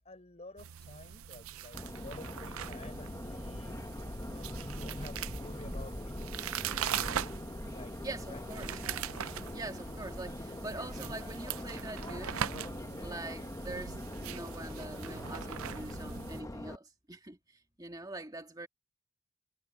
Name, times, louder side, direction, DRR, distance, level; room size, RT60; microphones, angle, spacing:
voice 1, 0.0-3.8 4.3-6.5 6.9-7.2 7.7-7.9 8.3-8.4, left 1 dB, 30° left, 5.5 m, -50 dB
sound 1, 0.6-16.4, right 9 dB, 85° right, 0.5 m, -41 dB
Subway metro underground, 1.7-16.8, left 1 dB, 15° left, 1.0 m, -42 dB
voice 2, 8.0-8.7 9.5-12.4 13.0-17.4 17.8-18.7, right 2 dB, 20° right, 2.0 m, -44 dB
head